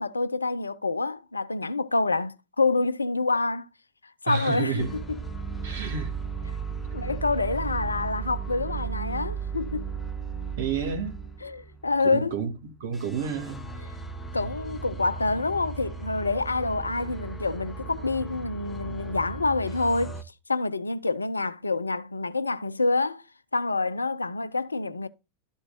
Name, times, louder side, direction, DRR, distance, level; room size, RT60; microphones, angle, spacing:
voice 1, 0.0-3.7 4.2-5.2 6.9-9.9 11.4-12.4 14.3-20.2 20.5-23.2 23.5-25.1, left 3 dB, 80° left, 0.5 m, -27 dB
voice 2, 4.3-4.9 5.6-6.1 10.6-11.2 12.0-13.7 14.4-14.5, right 6 dB, 55° right, 2.2 m, -30 dB
sound 1, 4.8-12.5 12.9-20.2, right 5 dB, 10° left, 1.0 m, -36 dB
12.5 x 4.5 x 4.0 m
figure-of-eight pair, 90°, 0 cm